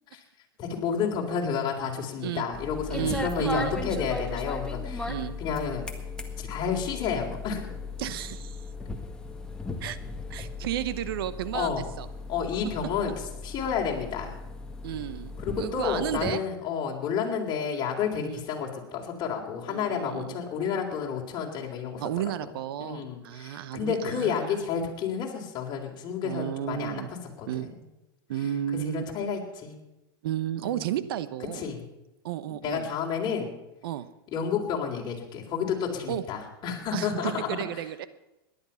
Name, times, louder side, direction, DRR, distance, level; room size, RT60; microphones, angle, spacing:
voice 1, 0.6-5.1 5.4-5.9 6.4-8.1 11.5-11.9 12.3-13.1 13.4-14.4 15.4-22.0 22.8-27.0 27.4-27.7 28.8-29.8 30.6-30.8 31.5-31.8 32.6-33.5 34.3-37.6, left 7 dB, 35° left, 0 dB, 3.8 m, -30 dB
sound 1, 2.5-16.3, left 3 dB, 5° left, 1.7 m, -37 dB
voice 2, 2.9-3.8 5.1-5.3 8.0-8.6 9.8-10.0 10.3-12.1 14.8-16.4 18.3-18.4 19.7-20.4 22.0-24.6 26.2-27.1 27.5-27.7 28.3-29.1 30.2-31.7 32.2-32.9 33.8-34.1 36.1-36.2 36.9-38.1, right 11 dB, 75° right, 14 dB, 1.0 m, -33 dB
17.5 x 11.0 x 5.8 m, 0.96 s
supercardioid pair, 125°, 12 cm